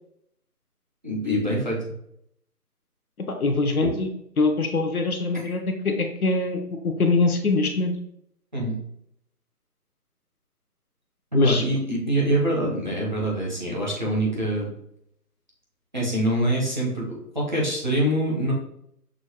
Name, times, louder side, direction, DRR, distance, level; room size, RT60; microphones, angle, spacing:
voice 1, 1.0-1.9 8.5-8.8 11.3-14.7 15.9-18.5, right 1 dB, 30° right, -5 dB, 1.0 m, -25 dB
voice 2, 3.3-4.1 4.4-7.9 11.3-11.6, left 3 dB, 65° left, 4 dB, 0.8 m, -23 dB
6.1 x 2.7 x 3.0 m, 0.74 s
figure-of-eight pair, 180°, 47 cm